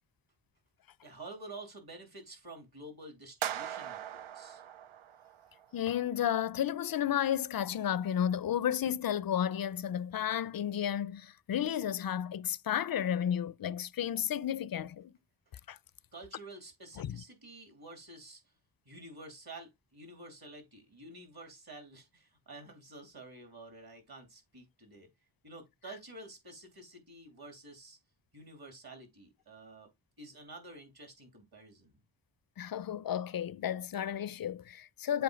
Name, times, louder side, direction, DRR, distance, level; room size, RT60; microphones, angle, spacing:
voice 1, 1.0-4.6 16.1-18.4 18.8-25.1 25.4-28.0 28.3-29.9 30.2-32.0, right 2 dB, 50° right, 2.9 m, -50 dB
sound 1, 3.4-5.6, right 10 dB, 85° right, 0.6 m, -40 dB
voice 2, 5.7-15.1 15.7-15.8 17.0-17.2 32.6-35.2, left 10 dB, 50° left, 0.5 m, -32 dB
7.7 x 2.7 x 5.1 m
wide cardioid pair, 75°, 47 cm